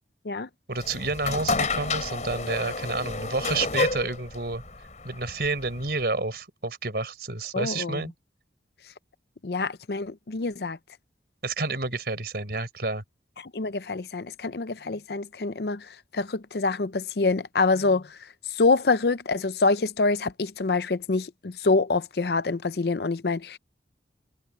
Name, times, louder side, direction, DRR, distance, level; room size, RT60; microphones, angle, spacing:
sound 1, 0.7-6.0, left 3 dB, 40° left, 4.5 m, -30 dB
voice 1, 0.7-4.6 5.0-8.1 11.4-13.0, right 3 dB, 60° right, 4.5 m, -29 dB
voice 2, 7.5-8.0 9.4-10.8 13.5-15.9 16.1-18.2 18.5-23.6, left 3 dB, 65° left, 0.6 m, -26 dB
head